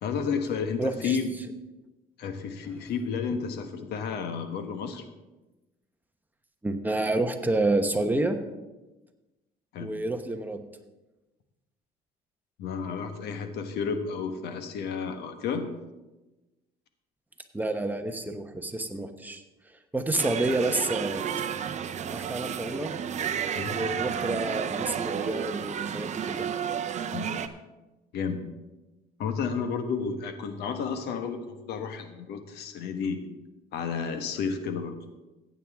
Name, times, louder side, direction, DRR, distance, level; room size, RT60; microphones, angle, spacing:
voice 1, 0.0-1.3 2.2-5.0 9.7-9.9 12.6-15.7 23.5-23.8 27.1-27.3 28.1-28.4 29.2-33.3 33.7-34.9, left 5 dB, 75° left, 7 dB, 1.3 m, -31 dB
voice 2, 0.8-1.2 6.6-8.4 9.8-10.6 17.5-19.4 19.9-21.2 22.1-22.9 23.7-26.5, right 2 dB, 10° right, 6 dB, 1.1 m, -29 dB
sound 1, 20.2-27.5, right 8 dB, 45° right, 0.7 m, -32 dB
15.0 x 9.1 x 3.6 m, 1.1 s
cardioid pair, 110°, 17 cm